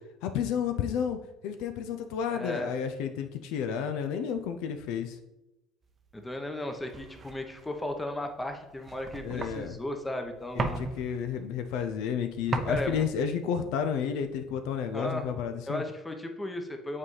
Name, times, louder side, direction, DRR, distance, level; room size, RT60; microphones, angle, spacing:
voice 1, 0.2-5.2 9.2-9.8 10.5-15.8, left 7 dB, 70° left, 8 dB, 0.4 m, -31 dB
voice 2, 2.3-2.7 6.1-10.8 12.7-13.0 14.9-15.3 15.7-17.0, left 1 dB, 15° left, 5 dB, 0.9 m, -35 dB
sound 1, 6.0-15.0, right 4 dB, 35° right, 0.6 m, -39 dB
7.2 x 4.1 x 3.2 m, 0.95 s
hypercardioid pair, 70°, 0 cm